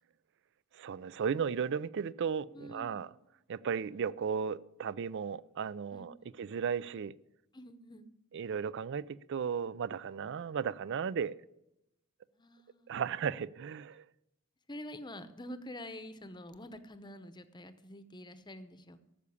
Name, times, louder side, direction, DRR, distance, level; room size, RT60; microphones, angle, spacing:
voice 1, 0.7-3.1 3.5-7.1 8.3-11.4 12.9-14.0, right 6 dB, 55° right, 0.4 m, -35 dB
voice 2, 2.5-3.1 5.9-6.4 7.5-8.1 12.3-13.0 14.7-19.0, left 1 dB, 20° left, 0.8 m, -47 dB
13.5 x 6.9 x 8.4 m
head